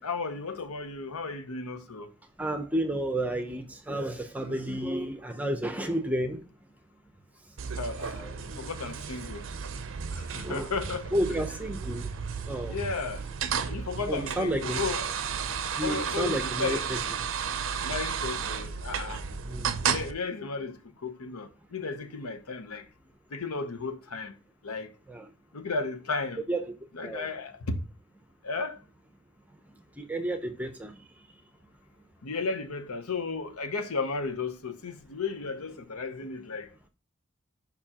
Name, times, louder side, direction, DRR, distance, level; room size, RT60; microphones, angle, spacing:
voice 1, 0.0-2.1 4.4-4.6 7.8-8.2 8.6-9.5 10.1-11.1 12.7-13.2 13.7-15.1 15.8-16.9 17.8-19.2 19.8-22.9 23.3-24.3 24.6-24.9 25.5-26.4 26.9-27.8 28.4-28.8 32.2-36.9, left 4 dB, 80° left, 0.8 m, -34 dB
voice 2, 2.4-6.4 8.2-8.7 10.3-10.7 11.1-12.1 12.4-12.8 14.1-14.8 15.8-17.0 19.5-19.9 25.1-25.3 26.5-26.6 27.0-27.3 30.0-31.1, right 1 dB, 5° right, 0.6 m, -31 dB
sound 1, 7.6-20.1, right 7 dB, 55° right, 0.5 m, -33 dB
6.7 x 5.4 x 2.9 m
head